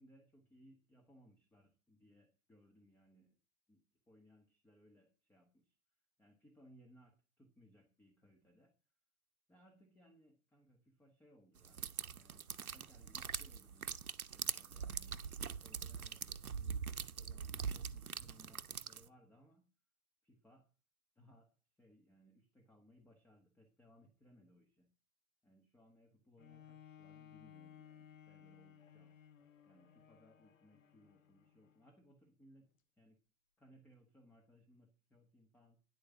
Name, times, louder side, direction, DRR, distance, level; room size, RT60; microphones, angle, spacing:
voice 1, 0.0-3.4 3.7-3.8 4.1-5.7 6.2-8.7 9.5-11.8 12.1-14.0 14.3-15.2 15.6-19.6 20.2-20.7 21.1-21.5 21.8-24.9 25.4-29.2 29.6-32.7 33.0-33.2 33.6-35.8, equal, 5° left, 3 dB, 1.3 m, -66 dB
sound 1, 11.6-19.1, right 7 dB, 75° right, 0.8 m, -43 dB
Bowed string instrument, 26.4-32.0 32.6-32.7, left 9 dB, 60° left, 1.1 m, -60 dB
9.9 x 8.5 x 5.8 m, 0.36 s
figure-of-eight pair, 115°, 44 cm